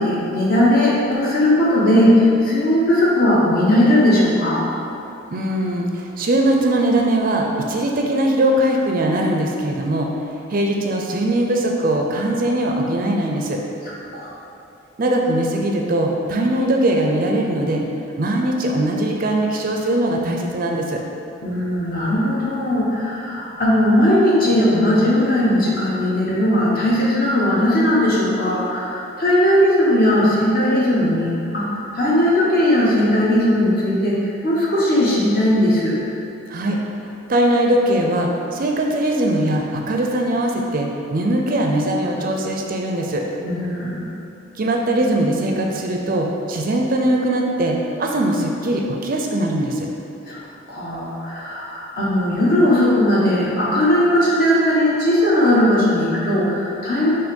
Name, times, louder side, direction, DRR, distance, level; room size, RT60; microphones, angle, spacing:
voice 1, 0.0-4.6 14.1-14.3 21.4-31.7 31.9-36.0 43.4-44.1 50.3-50.4 50.7-57.1, left 1 dB, 45° left, -6 dB, 1.2 m, -18 dB
voice 2, 5.3-10.1 10.5-13.6 15.0-17.8 18.2-21.0 36.5-36.8 37.3-43.2 44.6-49.9, right 1 dB, 45° right, 1 dB, 0.5 m, -20 dB
6.1 x 3.0 x 5.3 m, 2.8 s
head